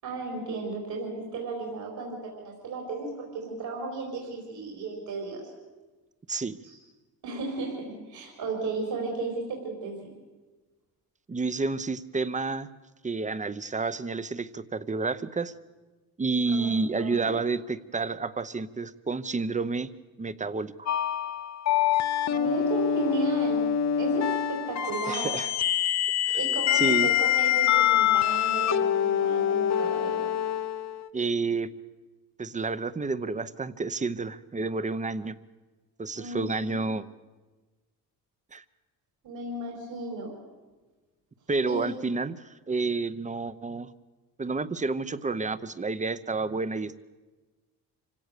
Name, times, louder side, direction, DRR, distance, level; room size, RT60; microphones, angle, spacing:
voice 1, 0.0-5.5 6.6-6.8 7.2-10.1 16.5-16.7 17.0-17.3 22.3-23.7 24.0-25.4 26.3-30.3 36.1-36.8 39.2-40.3 41.6-41.8, right 3 dB, 70° right, 0 dB, 4.9 m, -34 dB
voice 2, 11.3-12.7 13.0-15.5 16.2-19.9 20.2-20.9 25.1-25.5 26.2-26.4 26.7-27.1 31.1-31.7 32.4-35.3 36.0-37.0 38.5-38.6 41.5-42.4 42.7-43.9 44.4-47.0, right 3 dB, 20° right, 15 dB, 0.8 m, -30 dB
sound 1, 20.9-31.1, left 10 dB, 45° left, 0.8 m, -25 dB
26.5 x 17.0 x 6.7 m, 1.2 s
cardioid pair, 110°, 38 cm